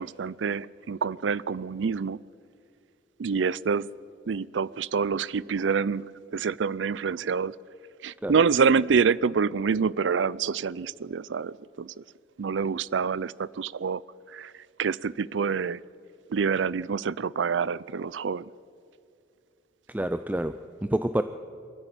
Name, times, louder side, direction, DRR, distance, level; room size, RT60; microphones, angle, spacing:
voice 1, 0.0-2.2 3.2-3.9 4.3-7.5 8.0-11.9 12.4-14.0 14.3-14.5 14.8-15.8 16.3-18.5, right 5 dB, 90° right, 21 dB, 0.5 m, -27 dB
voice 2, 19.9-21.2, right 1 dB, 10° right, 10 dB, 0.4 m, -28 dB
22.0 x 14.0 x 9.0 m, 2.4 s
head